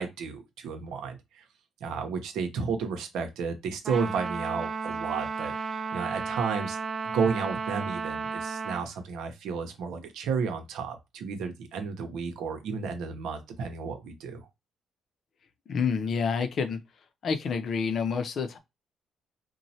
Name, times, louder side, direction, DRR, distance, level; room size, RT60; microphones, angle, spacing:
voice 1, 0.0-1.4 1.8-5.5 5.9-6.8 7.0-14.5, right 5 dB, 85° right, 0.7 m, -32 dB
Trumpet, 3.8-8.9, right 5 dB, 35° right, 0.6 m, -33 dB
voice 2, 15.7-16.8 17.2-18.6, left 5 dB, 60° left, 0.5 m, -28 dB
3.0 x 2.2 x 2.7 m
cardioid pair, 90°, 0 cm